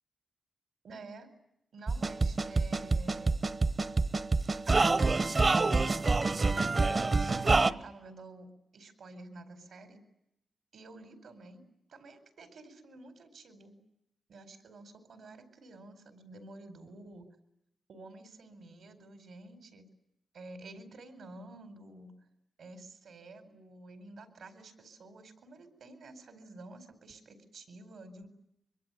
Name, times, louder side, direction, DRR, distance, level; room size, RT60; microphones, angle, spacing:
voice 1, 0.8-1.3 1.7-3.4 4.7-5.8 6.3-10.0 10.7-11.6 11.9-13.7 14.3-17.3 17.9-19.9 20.3-22.1 22.6-28.3, right 2 dB, 80° right, 9 dB, 4.6 m, -50 dB
sound 1, 1.9-7.7, right 3 dB, 35° right, 1.0 m, -26 dB
24.0 x 24.0 x 9.3 m, 0.80 s
wide cardioid pair, 115°, 0 cm